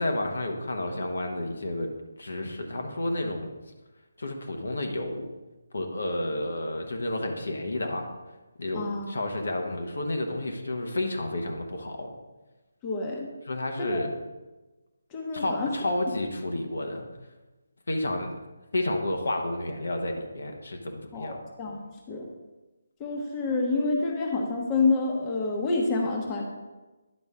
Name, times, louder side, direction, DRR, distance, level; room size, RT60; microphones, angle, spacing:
voice 1, 0.0-1.9 2.2-3.5 4.2-5.3 5.7-8.1 8.6-12.1 13.4-14.1 15.3-17.0 17.9-18.3 18.7-21.4, left 1 dB, 70° left, 3 dB, 1.1 m, -31 dB
voice 2, 8.7-9.1 12.8-13.3 13.8-14.0 15.1-15.9 21.1-21.8 22.1-22.3 23.0-26.4, left 3 dB, 20° left, 0 dB, 1.1 m, -28 dB
10.0 x 5.2 x 3.6 m, 1.1 s
figure-of-eight pair, 155°, 0 cm